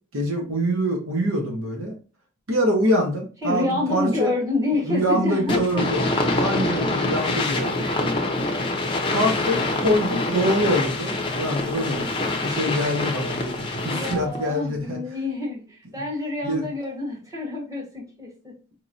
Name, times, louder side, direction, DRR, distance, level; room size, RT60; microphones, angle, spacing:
voice 1, 0.1-2.0 2.5-4.3 4.7-6.1 6.3-7.9 9.1-15.0 16.4-16.6, equal, 75° right, 0 dB, 1.1 m, -25 dB
voice 2, 3.4-6.6 7.0-7.1 7.6-8.0 13.9-18.5, left 2 dB, 15° right, -4 dB, 1.3 m, -28 dB
sound 1, 5.5-14.4, left 2 dB, 25° left, 0.6 m, -25 dB
4.6 x 3.0 x 2.6 m, 0.34 s
head